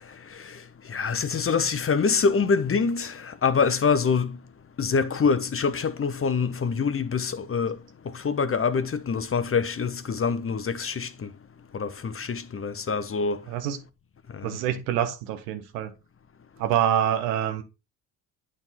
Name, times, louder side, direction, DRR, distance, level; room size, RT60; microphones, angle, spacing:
voice 1, 0.9-4.4 4.8-7.8 8.1-11.3 11.7-13.4 14.3-14.5, left 5 dB, 30° left, 0.7 m, -25 dB
voice 2, 14.4-15.9 16.6-17.6, right 10 dB, 85° right, 1.0 m, -26 dB
8.8 x 3.8 x 4.1 m
hypercardioid pair, 55°, 48 cm